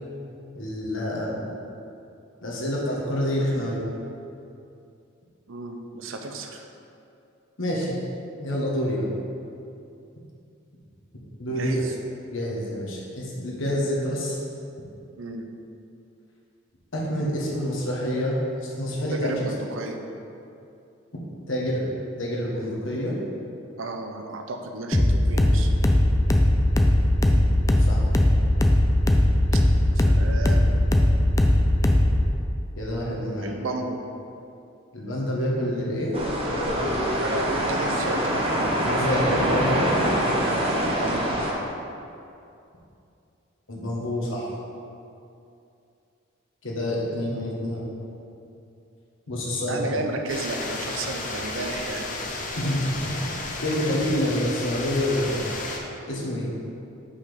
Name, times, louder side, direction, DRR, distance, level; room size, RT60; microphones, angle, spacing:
voice 1, 0.5-1.5 2.4-3.8 7.6-8.0 8.4-9.1 11.4-11.8 12.3-14.4 16.9-19.4 21.5-23.1 27.9-28.0 32.8-33.5 34.9-36.1 38.8-39.8 43.7-44.5 46.6-47.9 49.3-49.9 52.6-53.3 53.6-55.5 56.1-56.5, equal, 75° left, -4 dB, 1.6 m, -27 dB
voice 2, 5.5-6.6 11.5-11.9 15.2-15.5 19.1-20.0 23.8-25.7 27.3-27.4 29.5-29.6 29.9-30.7 33.4-34.0 37.2-38.5 40.8-41.3 49.7-52.1, right 2 dB, 80° right, 4 dB, 0.7 m, -33 dB
sound 1, 24.9-32.3, left 1 dB, 15° left, 0.4 m, -19 dB
sound 2, 36.1-41.5, equal, 30° right, 0.9 m, -24 dB
sound 3, 50.3-55.8, left 2 dB, 40° left, 0.8 m, -33 dB
6.2 x 5.7 x 5.2 m, 2.6 s
head